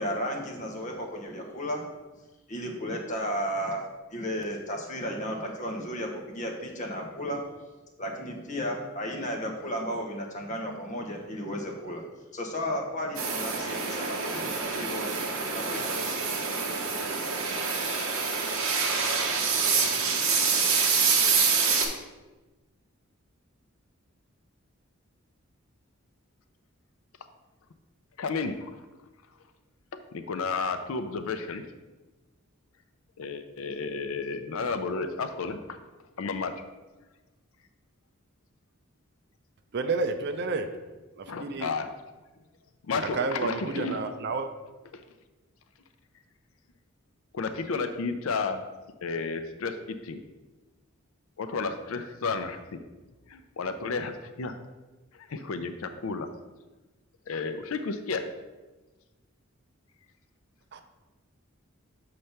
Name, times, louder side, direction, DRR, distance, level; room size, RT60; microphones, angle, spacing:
voice 1, 0.0-1.8 2.5-3.8 4.1-7.4 8.0-12.0 12.3-16.4, equal, 35° left, 1 dB, 1.1 m, -34 dB
sound 1, 13.2-21.9, right 5 dB, 70° right, 0.9 m, -26 dB
voice 2, 28.2-28.8 30.1-31.6 33.2-35.8 36.2-36.5 41.3-41.9 42.8-44.0 44.9-45.0 47.3-48.6 49.0-50.2 51.4-52.8 53.3-54.5 55.1-56.3 57.3-58.2, left 4 dB, 75° left, 8 dB, 0.5 m, -32 dB
voice 3, 39.7-40.7 41.2-41.7 43.1-44.5 60.7-60.8, right 4 dB, 55° right, 8 dB, 0.5 m, -30 dB
6.7 x 3.2 x 5.7 m, 1.2 s
head